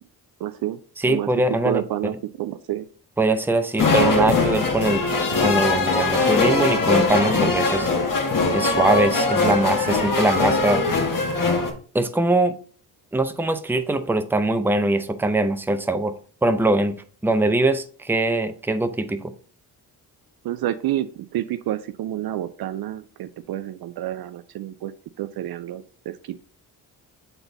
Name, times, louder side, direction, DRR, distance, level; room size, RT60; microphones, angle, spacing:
voice 1, 0.4-0.8 1.1-1.3 1.6-2.9 20.4-24.9 25.2-26.4, right 13 dB, 50° right, 12 dB, 0.5 m, -29 dB
voice 2, 1.0-1.8 3.2-5.0 5.4-7.9 8.5-10.8 11.9-12.6 13.1-16.2 16.4-16.9 17.2-19.3, right 2 dB, 5° right, 9 dB, 0.6 m, -22 dB
sound 1, 3.8-11.7, left 3 dB, 45° left, 1.6 m, -21 dB
6.9 x 3.9 x 3.9 m, 0.43 s
hypercardioid pair, 45°, 47 cm